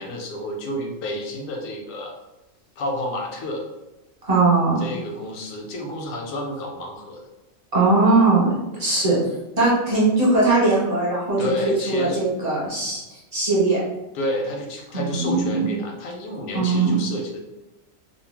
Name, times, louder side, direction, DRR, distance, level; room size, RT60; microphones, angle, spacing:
voice 1, 0.0-2.2 2.8-3.7 4.8-7.2 11.4-12.2 14.1-17.4, left 1 dB, 85° left, 1 dB, 1.0 m, -30 dB
voice 2, 4.3-4.8 7.7-9.2 9.6-13.0 13.3-13.8 14.9-15.7 16.5-16.9, right 3 dB, 35° right, -6 dB, 0.9 m, -20 dB
2.5 x 2.0 x 3.3 m, 1.0 s
omnidirectional pair, 1.4 m